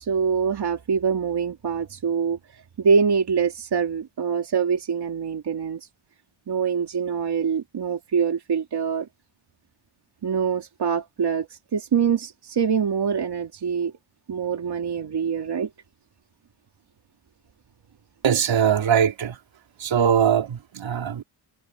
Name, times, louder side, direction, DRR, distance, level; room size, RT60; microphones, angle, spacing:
voice 1, 0.0-2.4 2.8-5.8 6.5-9.1 10.2-13.9 14.3-15.7, right 6 dB, 55° right, 2.8 m, -24 dB
voice 2, 18.2-19.4 19.8-21.2, right 8 dB, 75° right, 3.8 m, -21 dB
wide cardioid pair, 130°, 46 cm